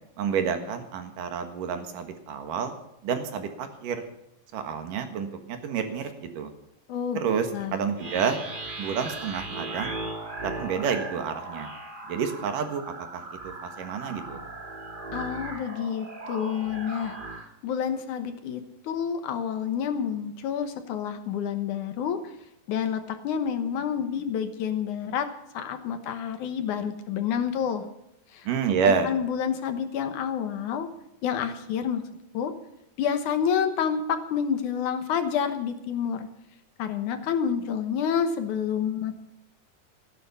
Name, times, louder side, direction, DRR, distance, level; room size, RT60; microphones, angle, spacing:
voice 1, 0.2-2.7 3.0-4.1 4.5-6.5 7.1-8.4 8.8-9.9 10.4-11.7 12.1-14.4 28.4-29.1, right 6 dB, 75° right, 7 dB, 3.2 m, -29 dB
voice 2, 6.9-7.2 7.5-7.8 15.1-17.2 17.6-22.2 22.7-25.3 25.5-27.8 28.3-28.5 28.8-30.9 31.2-32.0 32.3-32.5 33.0-36.3 36.8-39.1, left 8 dB, 70° left, 9 dB, 2.5 m, -28 dB
sound 1, 8.0-17.5, right 2 dB, 20° right, 1.6 m, -38 dB
14.5 x 11.0 x 6.9 m, 0.82 s
omnidirectional pair, 3.8 m